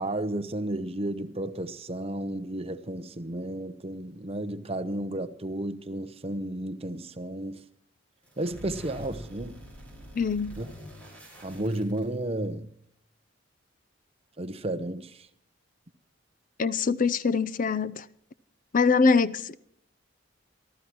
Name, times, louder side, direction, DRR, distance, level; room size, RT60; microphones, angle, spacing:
voice 1, 0.0-7.6 8.4-9.6 10.6-10.7 11.4-12.7 14.4-15.1, right 1 dB, 30° right, 0.9 m, -32 dB
sound 1, 8.2-12.5, equal, 5° left, 5.2 m, -45 dB
voice 2, 10.2-10.6 16.6-18.0 18.7-19.6, left 4 dB, 45° left, 0.5 m, -24 dB
27.0 x 13.5 x 3.0 m
head